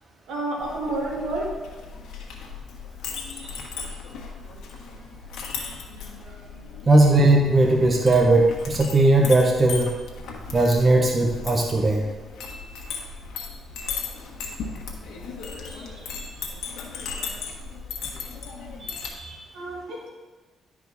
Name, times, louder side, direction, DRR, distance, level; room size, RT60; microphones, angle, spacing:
voice 1, 0.3-1.5 3.3-3.6 15.7-16.6 19.5-20.1, right 2 dB, 85° right, -3 dB, 2.3 m, -32 dB
Chink clink, 0.6-19.1, left 5 dB, 80° left, 1.4 m, -37 dB
voice 2, 6.9-9.9 10.5-12.0 18.8-19.5, right 2 dB, 30° right, 1 dB, 1.1 m, -18 dB
11.0 x 4.9 x 4.1 m, 1.2 s
cardioid pair, 90°, 0 cm